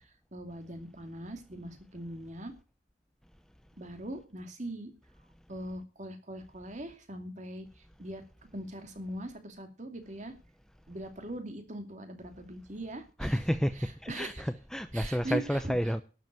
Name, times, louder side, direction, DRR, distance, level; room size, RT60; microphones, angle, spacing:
voice 1, 0.3-2.5 3.8-4.9 5.5-7.7 8.0-8.2 8.5-10.3 10.9-13.4 13.8-14.4 14.9-15.7, right 1 dB, 40° right, 2.6 m, -41 dB
voice 2, 13.2-16.0, equal, 5° left, 0.6 m, -30 dB
12.0 x 8.0 x 7.6 m
head